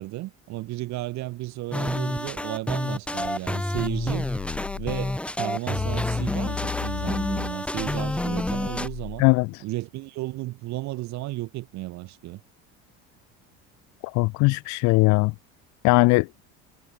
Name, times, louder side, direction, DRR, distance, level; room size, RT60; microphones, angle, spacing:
voice 1, 0.0-4.3 4.7-9.2 9.6-12.4, right 18 dB, 60° right, 6.7 m, -33 dB
sound 1, 1.7-8.9, left 1 dB, 5° left, 1.1 m, -29 dB
sound 2, 3.8-5.2 5.8-9.2, left 12 dB, 45° left, 2.7 m, -35 dB
voice 2, 9.2-9.6 14.1-15.3 15.8-16.3, left 25 dB, 65° left, 0.8 m, -19 dB
cardioid pair, 130°, 32 cm